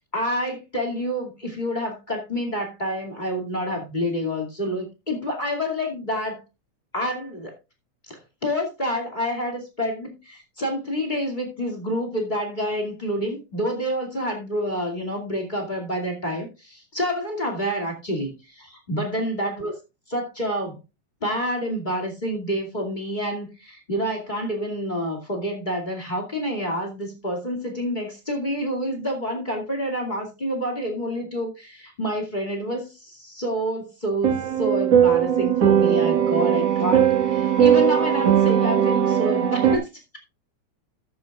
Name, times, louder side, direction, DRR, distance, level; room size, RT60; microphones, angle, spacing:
voice 1, 0.1-6.4 6.9-7.6 8.1-19.7 20.1-20.8 21.2-39.9, equal, 15° left, 3 dB, 2.1 m, -28 dB
sound 1, 34.2-39.8, right 9 dB, 60° right, 2.5 m, -19 dB
13.0 x 9.9 x 2.4 m, 0.27 s
omnidirectional pair, 3.4 m